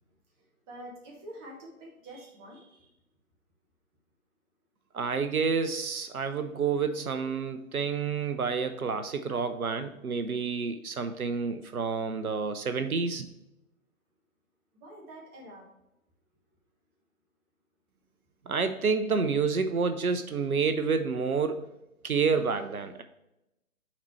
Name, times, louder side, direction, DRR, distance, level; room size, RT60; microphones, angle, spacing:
voice 1, 0.7-2.9 14.7-15.7, right 1 dB, 15° right, -2 dB, 1.1 m, -46 dB
voice 2, 4.9-13.3 18.5-21.6 22.0-23.0, right 5 dB, 75° right, 9 dB, 0.7 m, -29 dB
5.9 x 4.1 x 4.5 m, 0.90 s
figure-of-eight pair, 135°, 43 cm